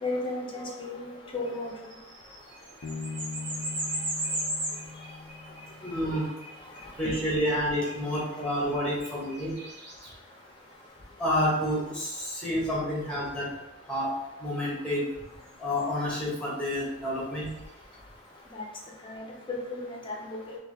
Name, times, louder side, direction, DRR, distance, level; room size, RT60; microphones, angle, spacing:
voice 1, 0.0-1.7 18.5-18.6 19.0-20.6, left 2 dB, 25° left, -2 dB, 0.6 m, -34 dB
sound 1, 1.7-12.3 14.0-14.1 15.3-18.2, right 1 dB, 50° right, 1.0 m, -39 dB
Bass guitar, 2.8-6.3, left 4 dB, 65° left, 0.4 m, -40 dB
voice 2, 5.8-6.2 7.0-9.5 11.2-13.5 13.9-14.1 14.4-15.0 15.6-17.5, equal, 5° left, -5 dB, 1.2 m, -29 dB
3.6 x 3.0 x 3.4 m, 0.98 s
head